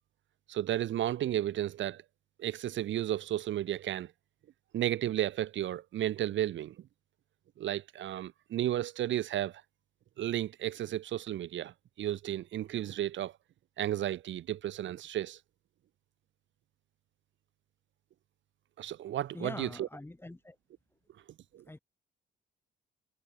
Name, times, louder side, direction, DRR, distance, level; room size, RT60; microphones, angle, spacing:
voice 1, 0.5-2.0 2.4-4.1 4.7-6.7 7.6-9.6 10.2-13.3 13.8-15.4 18.8-19.9 21.5-21.6, right 12 dB, 70° right, 1.3 m, -33 dB
voice 2, 19.3-20.6 21.7-21.8, left 2 dB, 10° left, 2.4 m, -43 dB
cardioid pair, 90°, 20 cm